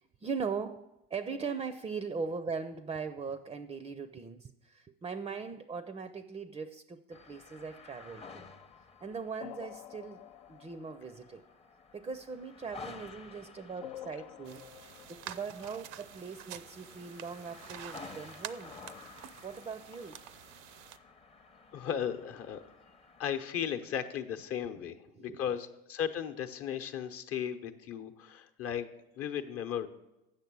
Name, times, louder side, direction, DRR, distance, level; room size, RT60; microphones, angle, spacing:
voice 1, 0.0-8.5 9.0-11.4 11.9-18.7 19.4-20.1 25.1-25.4, right 5 dB, 20° right, 12 dB, 0.5 m, -40 dB
sound 1, 7.1-23.4, left 4 dB, 20° left, 0.7 m, -53 dB
sound 2, 8.4-11.7 13.8-15.5, left 13 dB, 70° left, 0.4 m, -49 dB
sound 3, 14.5-21.0, right 12 dB, 65° right, 0.6 m, -48 dB
voice 2, 21.7-22.6 23.2-28.9 29.2-29.9, left 9 dB, 50° left, 8 dB, 0.9 m, -36 dB
8.2 x 6.5 x 6.1 m, 0.93 s
hypercardioid pair, 80°, 29 cm